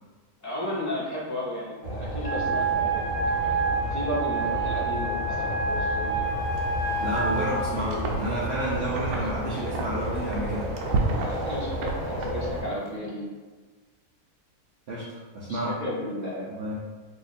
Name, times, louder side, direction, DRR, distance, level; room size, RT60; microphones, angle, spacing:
voice 1, 0.4-3.0 3.5-5.2 5.5-6.3 7.8-8.0 11.1-13.3 15.5-16.5, left 1 dB, 15° left, -9 dB, 0.9 m, -34 dB
sound 1, 1.8-12.6, right 1 dB, 45° left, 1.1 m, -32 dB
Wind instrument woodwind instrument, 2.2-7.6, right 3 dB, 20° right, 1.4 m, -28 dB
Wind, 6.4-12.9, right 3 dB, 80° right, 1.1 m, -33 dB
voice 2, 7.0-10.7 14.9-15.0 15.3-15.7 16.5-16.7, right 1 dB, 55° right, -7 dB, 0.8 m, -30 dB
2.9 x 2.5 x 4.0 m, 1.4 s
omnidirectional pair, 1.6 m